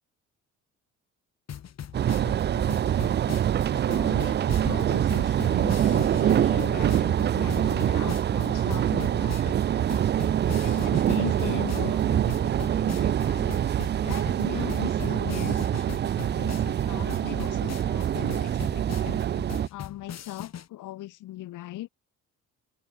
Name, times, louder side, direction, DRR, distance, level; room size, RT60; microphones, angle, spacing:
sound 1, 1.5-20.7, left 9 dB, 60° left, 3.9 m, -41 dB
sound 2, 1.9-19.7, right 10 dB, 35° right, 0.4 m, -25 dB
voice 1, 3.9-9.4 10.4-13.5 14.0-15.9 16.4-19.2 19.7-21.9, left 15 dB, 90° left, 4.3 m, -39 dB
open air
cardioid pair, 90°, 30 cm